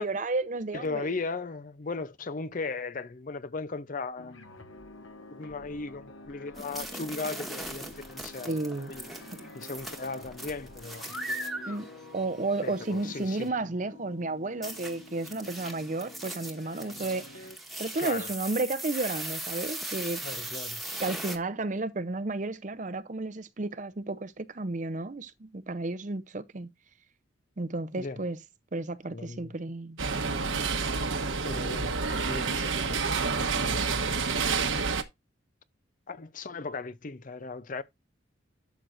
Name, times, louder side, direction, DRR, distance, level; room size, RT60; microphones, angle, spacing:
voice 1, 0.0-1.2 8.5-8.9 11.7-17.5 17.8-20.2 21.0-26.7 27.6-28.4 28.7-30.0, right 2 dB, 40° right, 0.6 m, -32 dB
voice 2, 0.7-4.3 5.3-8.6 8.9-9.0 9.5-11.1 12.6-13.5 18.0-18.3 20.2-20.8 27.9-28.2 29.1-29.5 31.4-34.4 36.1-37.8, left 3 dB, 40° left, 0.5 m, -37 dB
sound 1, 4.2-17.6, left 2 dB, 75° left, 1.2 m, -49 dB
sound 2, 6.6-13.5 14.6-21.4, right 1 dB, ahead, 1.4 m, -39 dB
sound 3, 30.0-35.0, right 4 dB, 70° right, 1.2 m, -28 dB
12.0 x 6.3 x 2.6 m
head